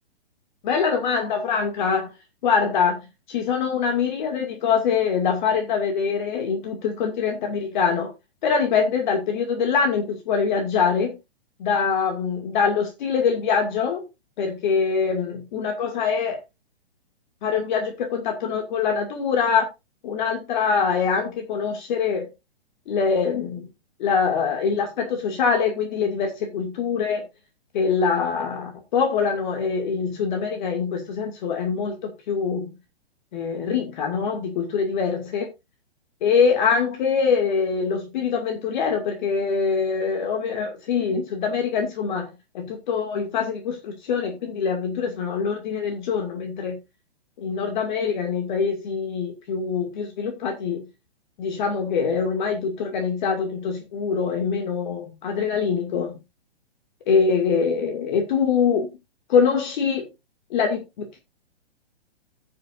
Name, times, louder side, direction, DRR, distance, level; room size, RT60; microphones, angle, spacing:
voice 1, 0.6-2.1 2.4-3.0 3.3-8.1 8.4-11.2 11.6-14.0 14.4-16.4 17.4-19.7 20.0-22.3 22.9-23.7 24.0-27.2 27.7-32.7 33.3-35.5 36.2-42.3 42.5-46.8 47.4-50.9 51.4-56.2 57.1-58.9 59.3-60.1 60.5-61.2, left 6 dB, 50° left, 2.3 m, -24 dB
16.5 x 6.9 x 2.6 m
hypercardioid pair, 145°, 31 cm